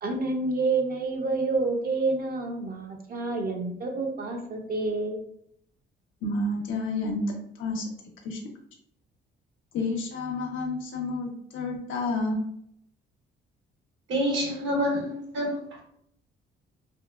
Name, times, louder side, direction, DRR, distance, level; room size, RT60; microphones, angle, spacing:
voice 1, 0.0-5.2, right 3 dB, 50° right, 2 dB, 0.6 m, -28 dB
voice 2, 6.2-7.2 7.6-7.8 8.2-8.4 9.7-12.4, left 2 dB, 75° left, 1 dB, 0.5 m, -30 dB
voice 3, 14.1-15.6, equal, 70° right, -1 dB, 1.0 m, -27 dB
2.8 x 2.1 x 2.2 m, 0.70 s
cardioid pair, 90°, 20 cm